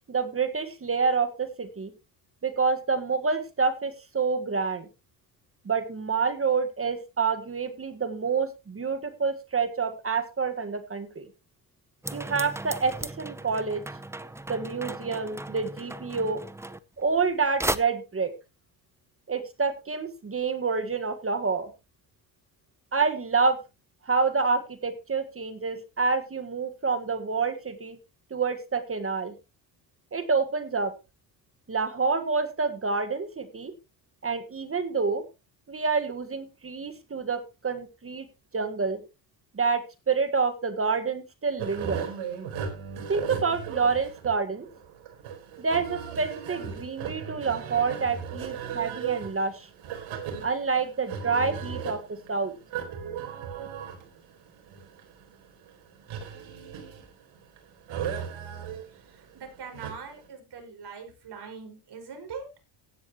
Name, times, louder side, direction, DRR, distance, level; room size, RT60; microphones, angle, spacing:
voice 1, 0.1-1.9 2.4-4.9 5.6-11.3 12.1-13.8 14.5-16.4 17.0-18.3 19.3-21.7 22.9-23.6 24.0-28.0 28.3-29.3 30.1-30.9 31.7-33.7 34.2-35.2 35.7-38.3 38.5-39.0 39.5-42.0 43.1-44.7 45.6-49.7 50.4-52.5, right 4 dB, 30° right, 10 dB, 1.6 m, -28 dB
sound 1, 12.0-17.3 17.6-17.8, right 2 dB, 5° right, 0.6 m, -35 dB
sound 2, 41.6-60.3, right 7 dB, 80° right, 4.3 m, -37 dB
voice 2, 58.9-62.5, right 5 dB, 55° right, 4 dB, 5.4 m, -42 dB
15.5 x 10.5 x 3.0 m, 0.27 s
cardioid pair, 110°, 48 cm